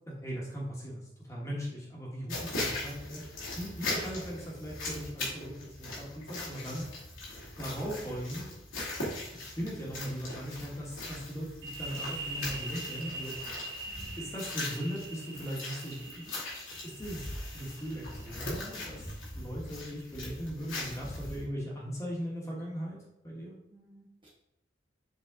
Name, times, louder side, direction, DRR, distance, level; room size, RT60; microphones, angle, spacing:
voice 1, 0.1-3.3 3.6-6.9 7.6-8.5 9.3-13.3 14.2-16.4 16.8-23.5, equal, 15° left, -5 dB, 1.3 m, -39 dB
sound 1, 2.3-21.4, left 2 dB, 85° left, 2.3 m, -40 dB
sound 2, 11.6-19.1, right 2 dB, 60° right, 0.9 m, -43 dB
voice 2, 13.9-14.3 23.7-24.3, equal, 25° right, -4 dB, 0.9 m, -57 dB
7.2 x 3.9 x 3.7 m, 0.87 s
head